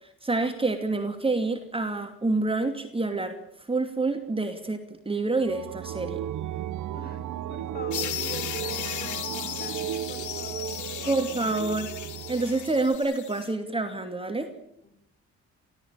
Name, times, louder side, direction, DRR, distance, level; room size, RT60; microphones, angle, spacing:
voice 1, 0.2-3.4 3.7-6.2 11.1-11.9 12.3-14.5, right 3 dB, 20° right, 6 dB, 2.7 m, -27 dB
sound 1, 5.4-13.0, right 11 dB, 75° right, 1.4 m, -35 dB
voice 2, 6.9-11.3 14.8-14.9, left 2 dB, 30° left, 9 dB, 6.1 m, -44 dB
sound 2, 7.9-13.5, left 11 dB, 75° left, 2.5 m, -36 dB
30.0 x 13.5 x 9.0 m, 0.76 s
cardioid pair, 90°, 30 cm